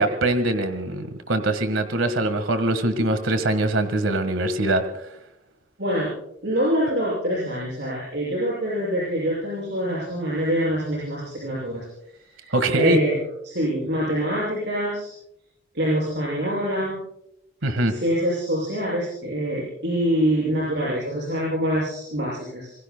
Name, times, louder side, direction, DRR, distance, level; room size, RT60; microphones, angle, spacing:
voice 1, 0.0-5.0 12.5-13.0 17.6-18.0, right 2 dB, 85° right, 9 dB, 1.6 m, -23 dB
voice 2, 5.8-6.1 6.4-11.9 12.3-13.2 13.4-15.1 15.7-17.0 17.9-22.7, equal, 60° right, -5 dB, 6.8 m, -25 dB
27.0 x 22.0 x 2.3 m, 0.82 s
head